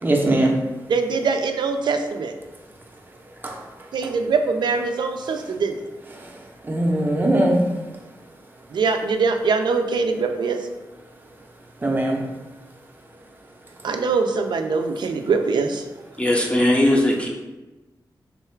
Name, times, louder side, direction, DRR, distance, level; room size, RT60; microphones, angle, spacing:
voice 1, 0.0-0.6 3.4-3.6 6.7-7.6 11.8-12.3, right 1 dB, 25° right, 0 dB, 0.6 m, -20 dB
voice 2, 0.9-2.3 3.9-5.8 8.7-10.7 13.8-15.8, right 4 dB, 75° right, 6 dB, 0.4 m, -23 dB
voice 3, 16.2-17.3, left 1 dB, 15° left, -1 dB, 0.5 m, -18 dB
3.7 x 2.4 x 4.4 m, 1.1 s
wide cardioid pair, 145°, 8 cm